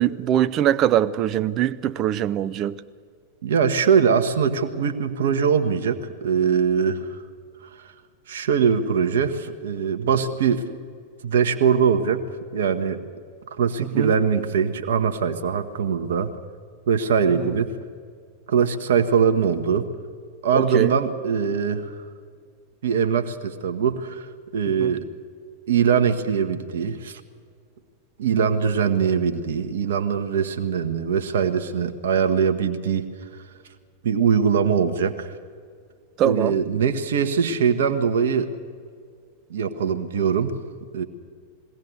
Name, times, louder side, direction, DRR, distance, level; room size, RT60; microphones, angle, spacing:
voice 1, 0.0-2.8 13.9-14.1 20.5-20.9 24.8-24.9 28.4-28.5 36.2-36.5, right 11 dB, 35° right, 0.6 m, -22 dB
voice 2, 3.4-7.2 7.8-7.9 8.3-10.6 11.2-12.2 12.5-13.0 13.6-16.3 16.9-17.7 18.5-19.9 20.4-21.9 22.8-25.0 25.7-27.2 28.2-33.1 34.0-35.3 36.2-38.5 39.5-40.6 40.9-41.0, right 6 dB, 60° right, 1.1 m, -22 dB
20.5 x 17.0 x 7.9 m
figure-of-eight pair, 90°, 0 cm